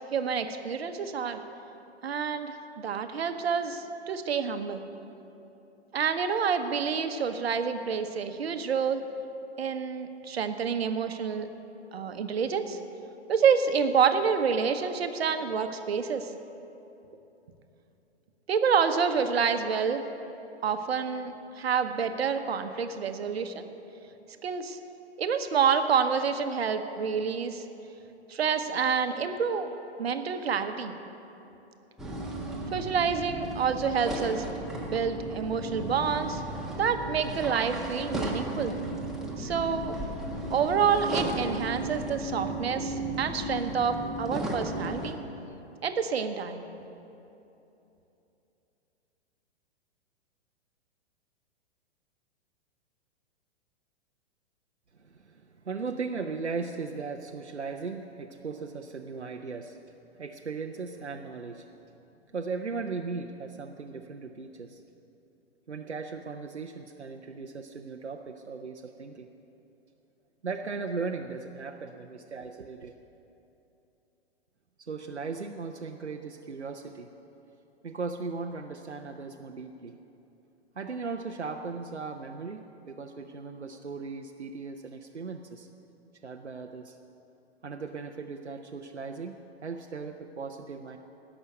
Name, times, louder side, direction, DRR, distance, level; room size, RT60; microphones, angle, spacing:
voice 1, 0.1-1.4 2.0-4.8 5.9-9.0 9.6-11.5 11.9-12.8 13.3-16.3 18.5-20.0 20.6-23.7 24.4-24.8 25.2-27.6 28.3-29.7 30.0-30.9 32.7-34.4 34.9-36.4 36.7-38.7 39.4-40.0 40.5-45.2 45.8-46.6, right 6 dB, 65° right, 8 dB, 1.0 m, -28 dB
sound 1, 32.0-45.1, right 1 dB, ahead, 1.4 m, -35 dB
voice 2, 55.0-59.8 60.2-61.7 62.3-64.8 65.7-69.3 70.4-72.9 74.9-77.1 77.8-80.0 80.8-85.7 86.2-87.0 87.6-91.0, right 4 dB, 90° right, 4 dB, 0.7 m, -37 dB
17.0 x 6.3 x 8.0 m, 2.9 s
figure-of-eight pair, 110°, 33 cm